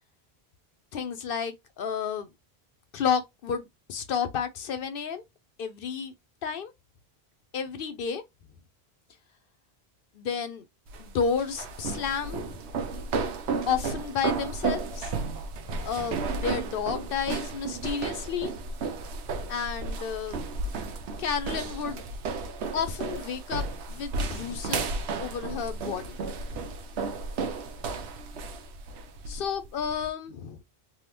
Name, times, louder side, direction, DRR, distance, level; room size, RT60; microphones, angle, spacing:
voice 1, 0.9-2.3 2.9-5.2 5.6-6.1 6.4-6.7 7.5-8.2 10.1-10.6 11.0-12.6 13.7-15.2 15.8-18.5 19.5-20.4 21.2-22.0 22.7-26.2 26.5-26.7 29.3-30.6, left 7 dB, 65° left, 0.7 m, -31 dB
sound 1, 10.9-30.1, right 4 dB, 85° right, 0.9 m, -33 dB
3.4 x 2.3 x 2.9 m
omnidirectional pair, 1.1 m